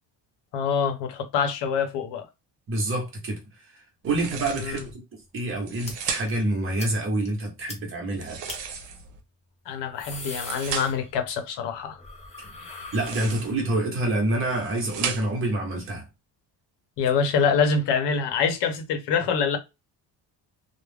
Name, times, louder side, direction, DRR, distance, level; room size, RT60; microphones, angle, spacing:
voice 1, 0.5-2.3 4.5-4.8 9.7-12.0 17.0-19.6, left 6 dB, 70° left, 0.8 m, -25 dB
voice 2, 2.7-3.4 4.0-8.4 12.4-12.6 12.9-16.1, right 1 dB, 30° right, 0.9 m, -27 dB
sound 1, 4.0-4.9 5.5-6.5 8.1-9.2 10.0-11.1 12.8-13.7 14.3-15.5, right 7 dB, 80° right, 0.7 m, -35 dB
sound 2, 5.8-5.9 6.3-6.4 6.8-6.9 7.3-7.4 7.7-7.8 8.5-8.6 9.7-11.4 11.7-13.8, left 3 dB, 15° left, 0.4 m, -40 dB
2.3 x 2.0 x 3.3 m
cardioid pair, 175°, 43 cm